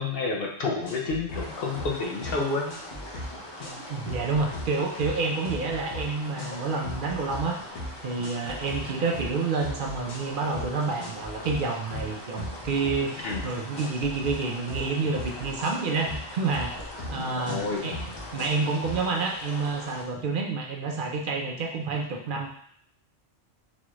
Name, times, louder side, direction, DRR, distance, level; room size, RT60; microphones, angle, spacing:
voice 1, 0.0-2.7 13.2-13.4 17.1-17.9, left 3 dB, 60° left, 0 dB, 0.8 m, -30 dB
sound 1, 0.8-1.5 1.8-2.0 2.2-2.4 2.7-3.3 3.6-3.8 4.1-4.7 5.0-5.2 5.4-6.1 6.4-6.6 6.8-7.4 7.8-7.9 8.2-8.8 9.1-9.3 9.6-10.2 10.5-10.7 11.0-11.6 11.9-13.0 13.3-13.5 13.8-14.3 14.7-14.9 15.1-16.3 16.5-17.1 17.4-17.6 17.9-18.6 18.8-19.0, left 1 dB, 80° left, 1.3 m, -37 dB
sound 2, 1.3-20.0, left 1 dB, 30° left, 0.5 m, -42 dB
voice 2, 3.9-7.6 8.0-16.7 17.1-18.0 18.3-22.5, right 4 dB, 55° right, 1 dB, 0.6 m, -29 dB
4.1 x 2.4 x 3.0 m, 0.63 s
omnidirectional pair, 1.2 m